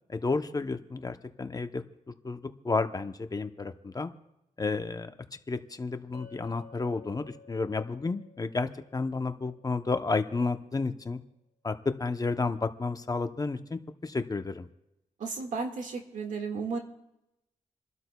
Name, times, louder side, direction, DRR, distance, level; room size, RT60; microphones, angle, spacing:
voice 1, 0.1-1.8 2.2-2.4 2.6-4.1 4.6-5.1 5.5-11.2 11.6-14.7, left 3 dB, 30° left, 8 dB, 0.7 m, -31 dB
Chink clink, 6.1-10.4, left 5 dB, 50° left, 3.4 m, -55 dB
voice 2, 15.2-16.8, right 4 dB, 75° right, 3 dB, 1.8 m, -34 dB
28.5 x 12.5 x 2.3 m, 0.89 s
wide cardioid pair, 105°, 13 cm